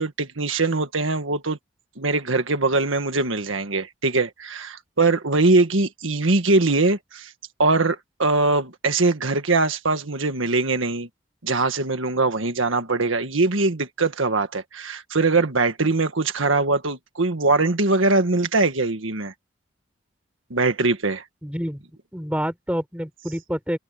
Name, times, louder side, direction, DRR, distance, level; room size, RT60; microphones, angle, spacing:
voice 1, 0.0-1.6 2.0-7.3 7.6-11.1 11.4-19.3 20.5-21.2, right 3 dB, 85° right, 1.7 m, -22 dB
voice 2, 21.4-21.8 22.1-23.8, equal, 5° right, 5.3 m, -28 dB
open air
head